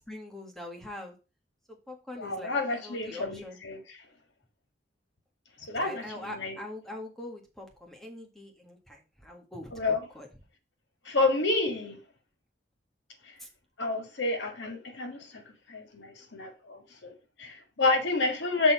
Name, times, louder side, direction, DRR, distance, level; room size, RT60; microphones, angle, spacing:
voice 1, 0.1-1.2 1.9-3.6 5.8-10.3 13.4-13.5, left 1 dB, ahead, 1.6 m, -43 dB
voice 2, 2.2-3.8 5.6-6.6 9.7-10.0 11.1-12.0 13.8-15.4 15.7-18.7, left 3 dB, 90° left, 1.7 m, -29 dB
6.3 x 4.1 x 5.9 m
head